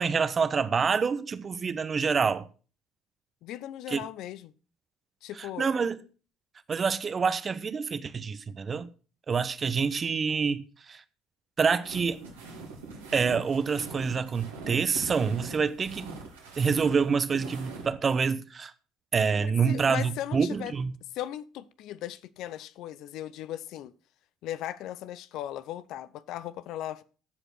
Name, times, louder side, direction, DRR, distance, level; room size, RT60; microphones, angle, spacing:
voice 1, 0.0-2.5 3.9-4.0 5.4-6.0 6.7-8.9 9.3-11.0 11.6-12.2 13.1-16.1 16.5-18.7 19.1-20.9, right 5 dB, 35° right, 1.0 m, -27 dB
voice 2, 3.4-4.5 5.2-5.7 19.4-20.7 21.1-23.9 24.4-27.0, left 12 dB, 65° left, 0.6 m, -37 dB
sound 1, 11.8-17.9, right 3 dB, 90° right, 2.9 m, -42 dB
14.5 x 5.1 x 6.0 m
hypercardioid pair, 60°, 0 cm